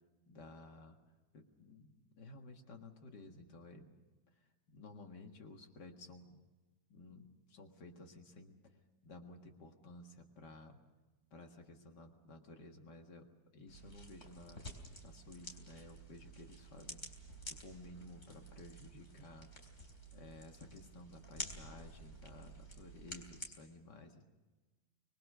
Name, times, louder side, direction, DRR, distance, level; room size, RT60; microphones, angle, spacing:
voice 1, 0.3-1.0 1.3-4.0 4.3-4.4 4.7-6.4 6.9-8.8 9.0-10.8 11.3-14.6 15.0-17.1 17.5-19.5 20.1-24.3, left 2 dB, 90° left, 4 dB, 2.4 m, -55 dB
sound 1, 13.7-23.5, equal, 45° left, 3.9 m, -51 dB
25.0 x 21.5 x 6.7 m, 1.2 s
omnidirectional pair, 1.8 m